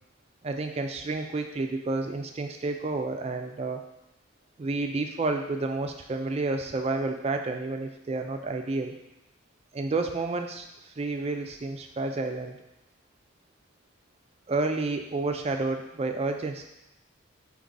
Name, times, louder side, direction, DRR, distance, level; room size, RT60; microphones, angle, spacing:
voice 1, 0.4-3.8 4.6-9.0 9.7-12.6 14.5-16.7, right 3 dB, 30° right, 5 dB, 0.3 m, -30 dB
4.6 x 2.9 x 3.9 m, 0.94 s
head